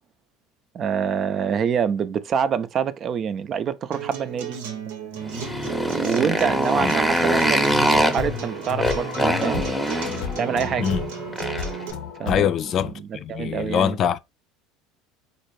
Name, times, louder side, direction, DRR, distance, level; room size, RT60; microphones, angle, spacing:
voice 1, 0.7-4.6 4.9-5.3 5.9-9.6 10.4-10.9 12.2-12.5 13.0-14.0, right 7 dB, 45° right, 0.4 m, -26 dB
Acoustic guitar, 3.9-11.9, right 9 dB, 80° right, 0.8 m, -34 dB
Motorcycle, 5.2-11.8, equal, ahead, 0.7 m, -24 dB
sound 1, 7.9-12.9, left 8 dB, 70° left, 0.7 m, -33 dB
voice 2, 12.3-14.2, left 9 dB, 50° left, 0.3 m, -24 dB
4.1 x 2.5 x 3.1 m
hypercardioid pair, 80°, 0 cm